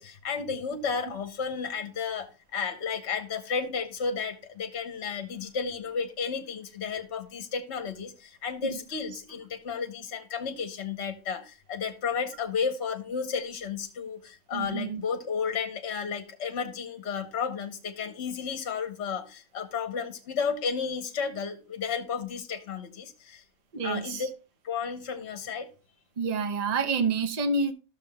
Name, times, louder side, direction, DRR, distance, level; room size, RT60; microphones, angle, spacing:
voice 1, 0.0-23.4 23.8-24.3 24.6-25.7, left 6 dB, 65° left, 1.0 m, -33 dB
voice 2, 14.5-15.0 23.7-24.3 26.2-27.7, right 4 dB, 40° right, 0.7 m, -28 dB
13.5 x 6.5 x 2.2 m
omnidirectional pair, 1.3 m